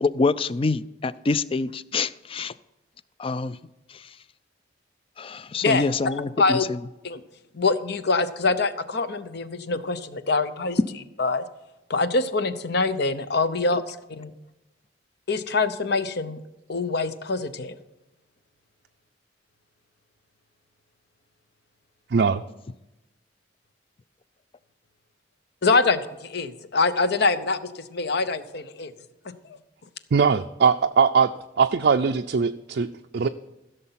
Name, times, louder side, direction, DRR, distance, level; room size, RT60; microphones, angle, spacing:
voice 1, 0.0-2.5 3.2-3.6 5.2-6.6, left 3 dB, 30° left, 16 dB, 0.4 m, -25 dB
voice 2, 7.5-10.8 11.2-11.5 11.9-14.3 15.3-16.4 16.7-17.7 25.6-28.9 29.4-29.6, left 3 dB, 60° left, 12 dB, 0.8 m, -24 dB
voice 3, 22.1-22.4 30.1-31.3 31.6-33.3, right 5 dB, 55° right, 6 dB, 0.4 m, -21 dB
15.5 x 6.8 x 5.7 m, 0.98 s
head